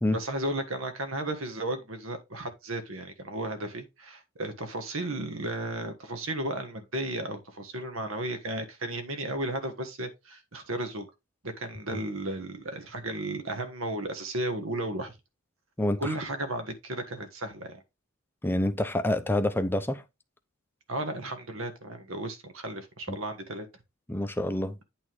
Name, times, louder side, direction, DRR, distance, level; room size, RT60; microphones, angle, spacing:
voice 1, 0.1-11.1 11.4-15.2 16.0-17.8 20.9-23.7, right 1 dB, 70° right, 1.5 m, -34 dB
voice 2, 18.4-20.0 23.1-23.2 24.1-24.8, left 1 dB, 10° left, 0.6 m, -27 dB
8.6 x 3.5 x 4.7 m
head